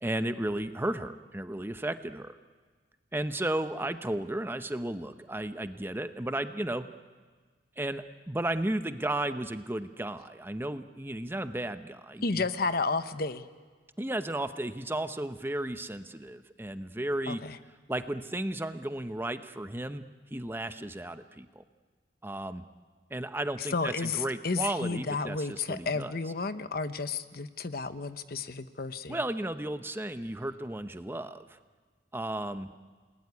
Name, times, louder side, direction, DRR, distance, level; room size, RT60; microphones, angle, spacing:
voice 1, 0.0-2.4 3.1-6.8 7.8-12.4 14.0-17.4 17.9-20.0 20.3-21.6 22.2-22.6 23.1-26.1 29.1-31.6 32.1-32.7, right 1 dB, 15° right, 9 dB, 0.8 m, -34 dB
voice 2, 12.2-13.4 17.3-17.6 23.6-29.2, left 4 dB, 60° left, 11 dB, 1.0 m, -32 dB
28.5 x 20.0 x 9.7 m, 1.5 s
head